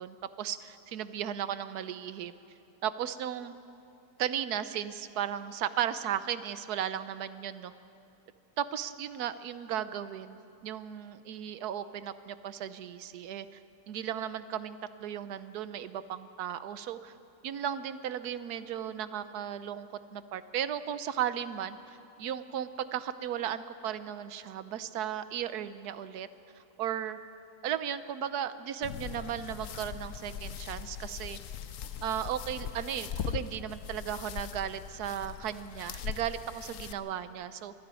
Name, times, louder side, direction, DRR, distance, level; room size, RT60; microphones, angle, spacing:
voice 1, 0.0-2.3 2.8-3.5 4.2-7.7 8.6-13.5 13.9-17.1 17.4-21.8 22.2-26.3 26.8-27.2 27.6-31.4 32.0-37.7, right 10 dB, 75° right, 13 dB, 1.3 m, -35 dB
sound 1, 28.8-36.9, left 8 dB, 60° left, 1.0 m, -40 dB
24.5 x 11.0 x 9.6 m, 2.7 s
omnidirectional pair, 1.7 m